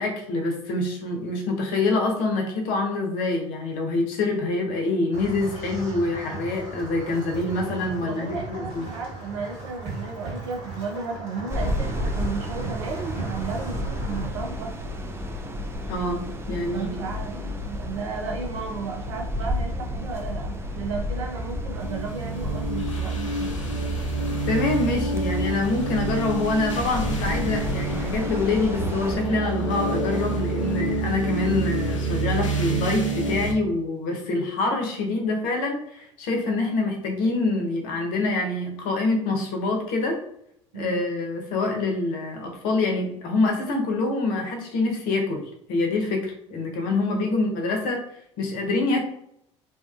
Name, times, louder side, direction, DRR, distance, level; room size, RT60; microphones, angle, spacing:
voice 1, 0.0-8.9 15.9-17.1 24.4-40.2 40.7-45.4 45.7-48.0 48.4-49.0, left 2 dB, 60° left, 2 dB, 0.7 m, -26 dB
sound 1, 5.1-14.3, right 2 dB, 50° right, 1.4 m, -36 dB
voice 2, 8.0-14.7 16.7-23.6 40.7-41.0 47.0-47.3, right 4 dB, 75° right, 2 dB, 0.6 m, -34 dB
sound 2, 11.5-29.2, left 1 dB, 15° right, 0.5 m, -32 dB
sound 3, 21.7-33.5, right 2 dB, 90° left, 0.4 m, -28 dB
2.6 x 2.3 x 2.4 m, 0.74 s
hypercardioid pair, 65°, 16 cm